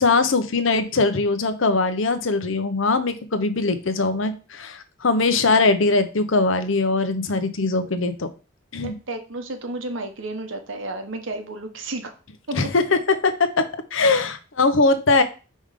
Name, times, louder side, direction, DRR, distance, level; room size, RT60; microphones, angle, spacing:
voice 1, 0.0-8.3 8.7-8.9 12.5-12.8 13.1-15.2, left 3 dB, 75° left, 10 dB, 0.8 m, -21 dB
voice 2, 8.8-12.2 12.5-12.6, right 2 dB, 75° right, 6 dB, 1.1 m, -32 dB
5.3 x 3.7 x 5.0 m, 0.33 s
head